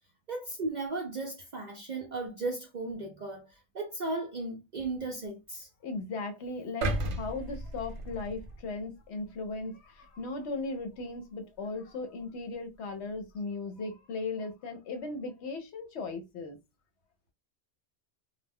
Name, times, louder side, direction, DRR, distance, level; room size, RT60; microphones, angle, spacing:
voice 1, 0.3-5.7, right 2 dB, 55° right, 0.5 m, -36 dB
voice 2, 5.8-16.6, left 3 dB, 70° left, 0.8 m, -37 dB
sound 1, 6.8-9.0 9.5-9.6, right 1 dB, 75° right, 0.9 m, -34 dB
2.2 x 2.1 x 3.4 m
omnidirectional pair, 1.2 m